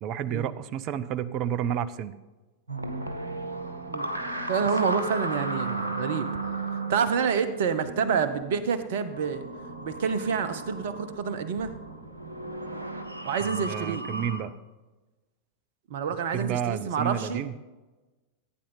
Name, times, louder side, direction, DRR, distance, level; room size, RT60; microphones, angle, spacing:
voice 1, 0.0-2.1 13.4-14.5 16.3-17.6, right 9 dB, 40° right, 17 dB, 0.6 m, -31 dB
sound 1, 2.7-14.4, right 2 dB, 80° right, 1.2 m, -35 dB
voice 2, 4.5-6.3 6.7-9.4 9.8-11.7 13.2-14.1 15.9-17.4, right 6 dB, 55° right, 12 dB, 1.0 m, -28 dB
15.5 x 9.2 x 3.9 m, 1.2 s
figure-of-eight pair, 90°, 0 cm